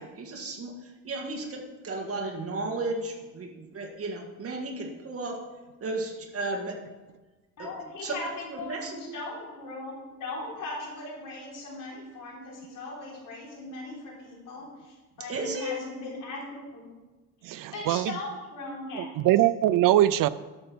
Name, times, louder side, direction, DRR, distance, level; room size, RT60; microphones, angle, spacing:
voice 1, 0.0-5.4 5.8-6.8 7.6-7.7 8.0-8.1 8.5-9.2 15.3-15.8, right 2 dB, 40° right, 1 dB, 2.0 m, -34 dB
voice 2, 7.6-16.9 17.5-19.1, left 2 dB, 65° left, -3 dB, 4.2 m, -39 dB
voice 3, 17.4-18.2 18.9-20.3, right 13 dB, 75° right, 15 dB, 0.5 m, -22 dB
12.0 x 6.8 x 6.2 m, 1.2 s
cardioid pair, 140°, 33 cm